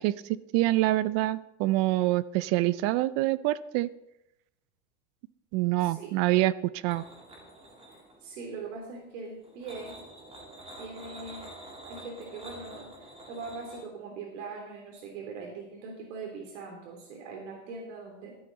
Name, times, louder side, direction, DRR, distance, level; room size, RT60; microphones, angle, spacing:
voice 1, 0.0-3.9 5.5-6.5 6.8-7.0, right 17 dB, 45° right, 18 dB, 0.5 m, -26 dB
voice 2, 5.8-6.2 8.2-10.0 10.8-11.5 11.8-18.4, right 4 dB, 75° right, 1 dB, 3.2 m, -41 dB
sound 1, 6.9-8.4 9.4-13.8, right 1 dB, 15° right, 3.0 m, -47 dB
13.5 x 12.5 x 4.0 m, 0.86 s
supercardioid pair, 145°, 37 cm